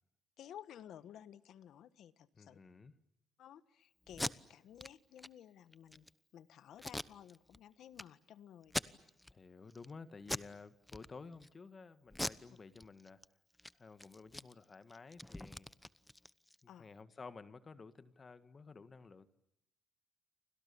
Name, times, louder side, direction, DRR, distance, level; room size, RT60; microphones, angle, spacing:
voice 1, 0.4-2.6 3.4-6.0 6.3-8.9 16.7-16.9, left 10 dB, 75° left, 1.3 m, -55 dB
voice 2, 2.4-2.9 9.3-13.2 13.8-15.7 16.6-19.3, left 4 dB, 35° left, 1.7 m, -53 dB
Packing tape duct tape, 4.1-4.3 4.8-4.9 5.2-5.3 5.7-6.1 6.8-7.6 7.9-8.0 8.6-9.3 9.7-9.9 10.2-10.5 10.9-11.5 12.1-13.2 13.5-13.7 14.0-16.6, left 1 dB, 10° left, 1.0 m, -42 dB
30.0 x 25.0 x 7.0 m
cardioid pair, 90°, 0 cm